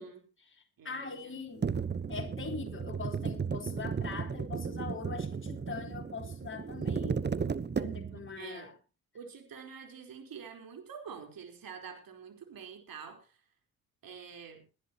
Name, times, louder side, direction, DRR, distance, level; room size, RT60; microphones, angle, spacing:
voice 1, 0.0-1.7 2.1-7.3 7.7-8.8, left 4 dB, 30° left, 1 dB, 4.0 m, -42 dB
voice 2, 0.8-1.7 8.1-8.7 9.1-13.4 14.0-14.6, right 6 dB, 55° right, 5 dB, 4.4 m, -47 dB
sound 1, 1.6-8.3, right 6 dB, 25° right, 1.0 m, -34 dB
22.0 x 11.0 x 3.0 m, 0.32 s
hypercardioid pair, 50°, 42 cm